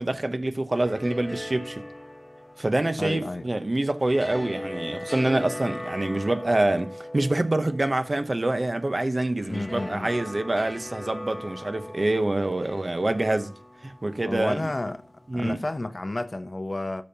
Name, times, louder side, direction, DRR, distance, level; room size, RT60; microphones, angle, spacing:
voice 1, 0.0-1.8 2.6-13.5 13.8-14.7 15.3-15.6, right 2 dB, 45° right, 0.8 m, -26 dB
sound 1, 0.6-15.7, left 1 dB, 20° left, 1.2 m, -40 dB
voice 2, 3.0-3.5 9.5-10.1 14.2-15.0 15.3-17.0, left 2 dB, 45° left, 0.6 m, -31 dB
13.0 x 5.3 x 2.8 m
wide cardioid pair, 50°, 0 cm